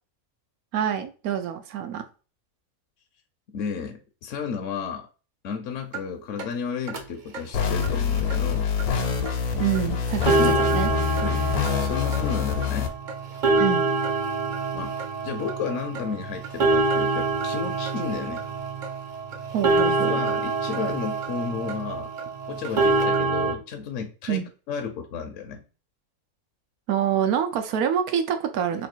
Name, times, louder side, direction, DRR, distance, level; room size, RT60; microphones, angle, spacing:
voice 1, 0.7-2.0 9.6-10.9 13.6-13.9 19.5-20.2 24.3-24.4 26.9-28.9, right 9 dB, 80° right, 1.1 m, -26 dB
voice 2, 3.5-5.1 5.4-8.7 10.3-10.6 11.2-11.4 11.8-12.9 14.7-14.9 15.2-18.4 20.1-22.1 22.5-25.6, left 6 dB, 65° left, 0.9 m, -32 dB
sound 1, 5.9-6.0 6.4-6.5 6.9-7.0 7.3-7.4 7.8-7.9 8.3-8.4 8.8-8.9 9.3-9.4 9.7-9.8 10.1-23.5, right 3 dB, 45° right, 0.6 m, -26 dB
sound 2, 7.5-12.9, left 7 dB, 80° left, 1.3 m, -25 dB
3.2 x 2.7 x 4.3 m
omnidirectional pair, 1.6 m